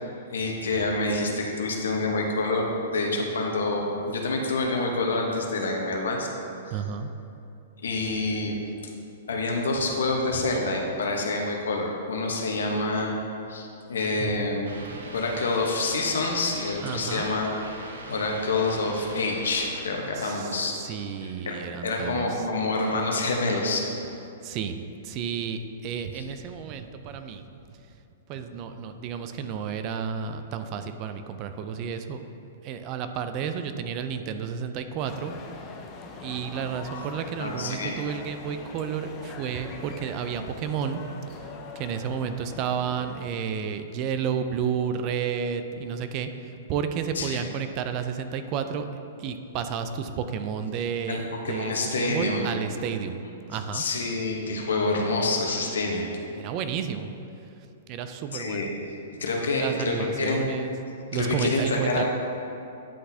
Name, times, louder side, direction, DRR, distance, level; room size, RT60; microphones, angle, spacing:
voice 1, 0.3-6.3 6.7-6.8 7.8-8.6 9.3-13.1 13.5-14.8 15.1-17.5 18.1-20.7 21.2-23.8 26.1-26.2 37.4-38.0 47.1-47.5 51.1-52.5 53.7-56.2 58.3-58.7 59.2-60.5 61.1-62.0, left 2 dB, 85° left, 0 dB, 1.0 m, -27 dB
voice 2, 6.7-7.1 14.2-15.0 16.8-17.3 20.2-22.3 24.4-24.8 25.0-27.4 28.3-32.2 32.6-35.3 36.2-41.0 41.4-41.5 41.8-48.9 49.2-53.2 53.5-53.8 56.3-57.1 57.9-58.7 59.5-60.7 61.1-62.0, right 7 dB, 40° right, 8 dB, 0.4 m, -31 dB
sound 1, 14.6-19.8, right 2 dB, 90° right, 0.8 m, -41 dB
sound 2, 35.0-43.3, left 4 dB, 30° left, 0.6 m, -42 dB
10.0 x 3.9 x 2.7 m, 2.8 s
hypercardioid pair, 135°, 0 cm